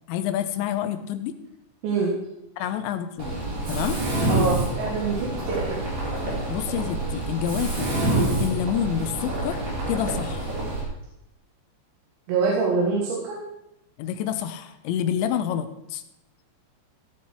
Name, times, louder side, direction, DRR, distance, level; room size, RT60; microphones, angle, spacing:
voice 1, 0.1-1.4 2.6-3.4 3.7-4.0 6.5-7.9 8.3-9.6 9.9-10.5 14.0-16.0, left 10 dB, 85° left, 9 dB, 3.1 m, -28 dB
voice 2, 1.8-2.1 4.3-5.8 12.3-13.4, right 4 dB, 85° right, -3 dB, 4.0 m, -25 dB
Mechanisms, 3.2-10.8, right 2 dB, 45° right, 4.9 m, -27 dB
17.0 x 7.4 x 4.6 m, 0.85 s
omnidirectional pair, 5.1 m